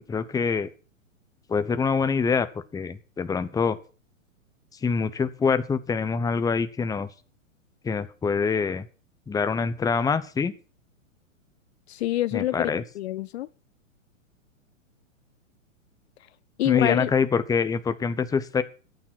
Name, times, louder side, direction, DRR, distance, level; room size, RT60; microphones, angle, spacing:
voice 1, 0.1-0.7 1.5-2.5 2.7-3.8 4.8-7.1 7.8-8.9 9.3-10.5 12.3-12.8 16.6-18.6, left 5 dB, 10° left, 1.0 m, -25 dB
voice 2, 11.9-13.5 16.6-17.1, left 15 dB, 50° left, 0.7 m, -26 dB
14.5 x 9.1 x 6.1 m
hypercardioid pair, 120°, 40 cm